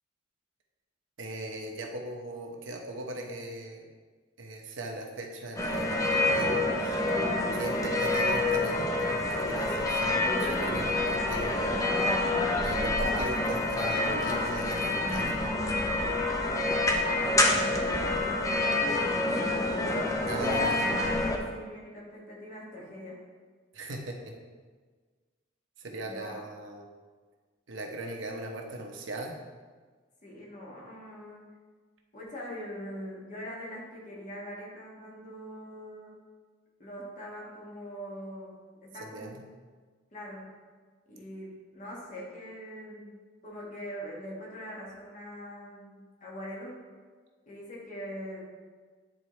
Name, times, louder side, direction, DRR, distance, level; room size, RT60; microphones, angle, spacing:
voice 1, 1.2-3.9 4.4-6.5 6.8-7.0 7.5-11.8 12.6-15.4 20.2-20.9 23.7-24.3 25.8-26.9 27.7-29.4 39.0-39.4, right 1 dB, 85° right, 2 dB, 0.9 m, -39 dB
sound 1, 5.6-21.4, left 2 dB, 20° left, 0.6 m, -27 dB
voice 2, 17.0-20.0 20.3-23.2 26.0-26.4 30.2-31.4 32.1-36.2 36.8-38.5 38.8-39.4 40.1-40.6 41.1-46.8 47.4-48.4, equal, 45° left, -4 dB, 1.5 m, -42 dB
9.4 x 4.0 x 3.2 m, 1.5 s
head